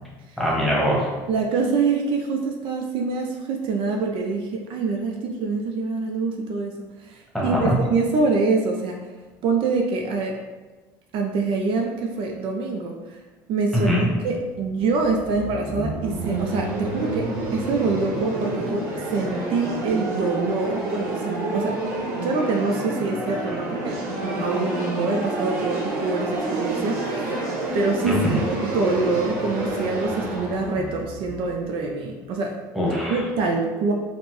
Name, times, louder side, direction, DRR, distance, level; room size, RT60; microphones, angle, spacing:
voice 1, 0.4-1.1 7.3-7.8 13.7-14.1 28.0-28.3 32.7-33.2, equal, ahead, -5 dB, 1.1 m, -22 dB
voice 2, 1.3-6.7 7.0-9.0 9.4-10.4 11.1-13.2 13.5-21.8 22.2-27.3 27.7-28.2 28.5-32.6 33.1-33.9, right 4 dB, 60° right, 2 dB, 0.4 m, -25 dB
sound 1, 14.4-32.2, right 2 dB, 85° right, 0.8 m, -29 dB
4.0 x 2.0 x 2.9 m, 1.2 s
supercardioid pair, 90°, 10 cm